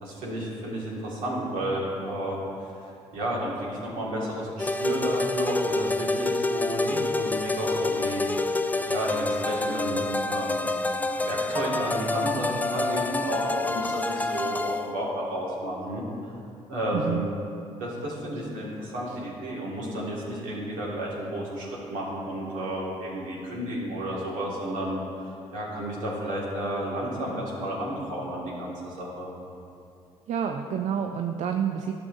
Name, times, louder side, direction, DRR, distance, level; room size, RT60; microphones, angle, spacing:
voice 1, 0.0-2.7 3.1-16.0 16.7-17.3 17.8-29.3, right 1 dB, 80° right, -5 dB, 2.0 m, -32 dB
sound 1, 4.6-14.9, left 2 dB, 10° left, 0.4 m, -28 dB
voice 2, 16.9-17.3 19.1-19.2 30.3-31.9, right 8 dB, 60° right, 5 dB, 0.4 m, -29 dB
12.0 x 6.3 x 2.6 m, 2.6 s
supercardioid pair, 60°, 13 cm